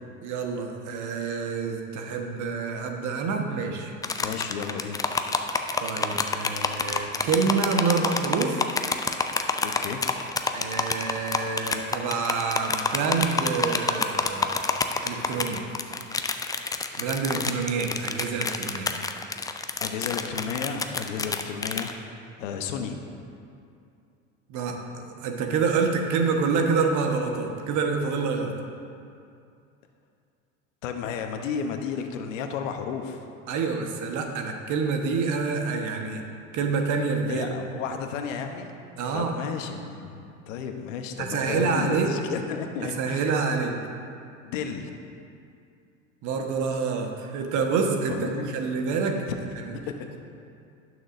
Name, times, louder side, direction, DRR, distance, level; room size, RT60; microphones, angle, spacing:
voice 1, 0.2-3.9 5.8-8.7 10.5-14.6 15.0-15.6 17.0-19.0 24.5-28.5 33.5-36.2 36.5-37.5 39.0-39.3 41.2-42.1 43.0-43.7 46.2-49.2 49.6-49.7, right 5 dB, 45° right, 3 dB, 1.4 m, -27 dB
sound 1, 4.0-21.9, left 4 dB, 10° left, 0.4 m, -28 dB
voice 2, 4.2-5.0 9.6-10.1 19.8-21.9 22.4-23.0 30.8-33.3 37.3-38.7 39.1-43.3 44.4-44.9 48.1-48.7 49.3-49.4 49.9-50.2, left 7 dB, 70° left, 5 dB, 1.0 m, -33 dB
18.5 x 6.4 x 2.7 m, 2.5 s
hypercardioid pair, 80°, 40 cm